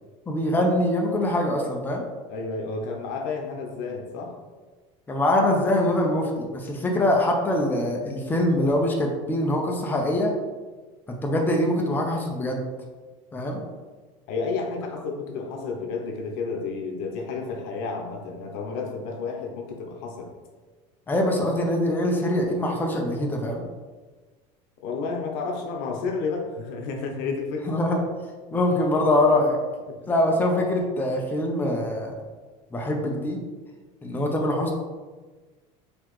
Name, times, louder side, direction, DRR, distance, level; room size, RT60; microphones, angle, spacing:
voice 1, 0.3-2.0 5.1-10.3 11.1-12.6 13.3-13.6 21.1-23.6 27.7-28.0 28.5-29.6 30.1-32.1 32.7-33.4 34.0-34.7, left 1 dB, 15° left, 1 dB, 0.5 m, -23 dB
voice 2, 2.3-4.4 14.3-20.3 24.8-27.8 29.9-30.0, left 4 dB, 75° left, 2 dB, 0.7 m, -31 dB
3.9 x 2.9 x 3.1 m, 1.3 s
cardioid pair, 135°, 15 cm